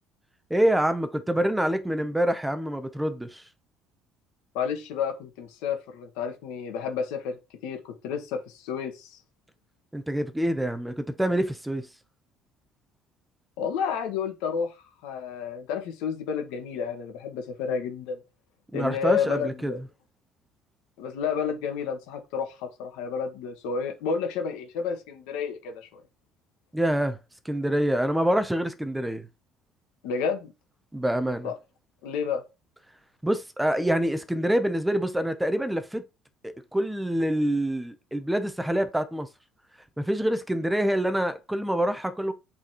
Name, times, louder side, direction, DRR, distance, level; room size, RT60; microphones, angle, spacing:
voice 1, 0.5-3.4 9.9-11.9 18.7-19.7 26.7-27.2 27.4-29.3 30.9-31.5 33.2-36.0 36.4-39.3 40.0-42.3, right 1 dB, 5° right, 0.6 m, -26 dB
voice 2, 4.5-7.4 7.6-9.2 13.6-14.8 15.0-18.2 18.7-19.8 21.0-26.0 30.0-30.5 31.4-31.5 32.0-32.4, left 6 dB, 90° left, 1.5 m, -31 dB
7.9 x 4.1 x 2.9 m
cardioid pair, 130°, 0 cm